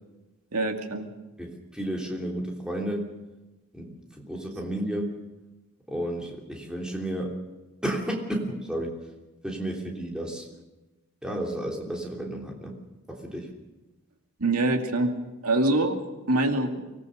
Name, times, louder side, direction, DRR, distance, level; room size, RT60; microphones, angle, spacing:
voice 1, 0.5-1.1 14.4-15.1 15.4-16.8, right 2 dB, 90° right, 4 dB, 2.5 m, -25 dB
voice 2, 1.4-3.1 3.7-3.9 4.3-5.1 5.9-7.4 7.8-9.0 9.4-10.5 11.2-12.8 13.1-13.5, right 1 dB, 5° right, 0 dB, 3.3 m, -32 dB
24.5 x 19.0 x 6.6 m, 1.1 s
head